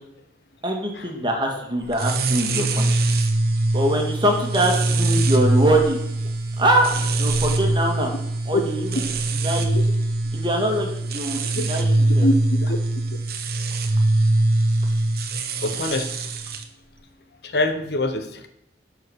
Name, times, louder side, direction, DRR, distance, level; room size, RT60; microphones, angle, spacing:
voice 1, 0.6-3.0 3.7-6.0 6.6-6.9 7.2-8.1 8.5-8.9 9.3-9.8 10.3-12.3, right 1 dB, 25° right, 1 dB, 1.9 m, -23 dB
sound 1, 1.9-16.6, right 2 dB, 55° right, 1.0 m, -22 dB
voice 2, 12.2-12.8 15.6-16.1 17.4-18.5, left 1 dB, 65° left, 8 dB, 0.9 m, -24 dB
11.5 x 5.0 x 6.3 m, 0.77 s
head